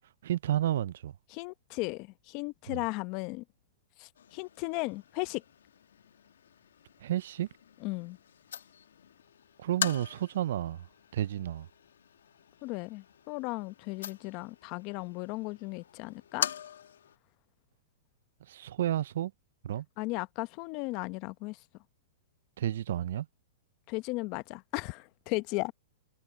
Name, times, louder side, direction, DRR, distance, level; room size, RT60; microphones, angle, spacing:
voice 1, 0.2-1.2 2.7-2.8 7.0-7.5 9.6-10.9 11.1-11.7 18.4-19.3 19.6-19.9 22.6-23.3, right 12 dB, 70° right, 0.4 m, -31 dB
voice 2, 1.3-3.4 4.0-5.4 7.8-8.2 12.6-16.5 20.0-21.6 23.9-25.7, left 24 dB, 45° left, 1.0 m, -36 dB
sound 1, 4.1-17.2, left 9 dB, 85° left, 1.2 m, -42 dB
hypercardioid pair, 130°, 0 cm